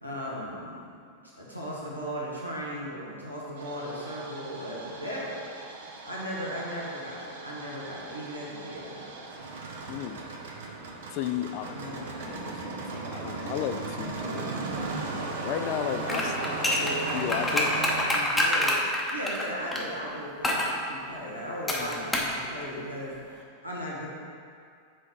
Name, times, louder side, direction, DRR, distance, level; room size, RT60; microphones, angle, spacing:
voice 1, 0.0-0.8 1.2-5.5 6.0-9.3 11.7-12.4 16.1-24.1, equal, 90° right, -6 dB, 1.4 m, -37 dB
Engine starting, 3.6-18.0, right 3 dB, 60° right, 0.8 m, -37 dB
voice 2, 9.9-10.2 11.1-14.5 15.2-16.3 17.1-17.7 21.8-22.1, left 10 dB, 45° left, 9 dB, 0.4 m, -34 dB
sound 1, 16.0-19.8 20.4-20.7 21.7-22.4 22.6-22.7, left 1 dB, 10° left, 0.9 m, -27 dB
6.1 x 4.4 x 4.8 m, 2.3 s
figure-of-eight pair, 90°, 0 cm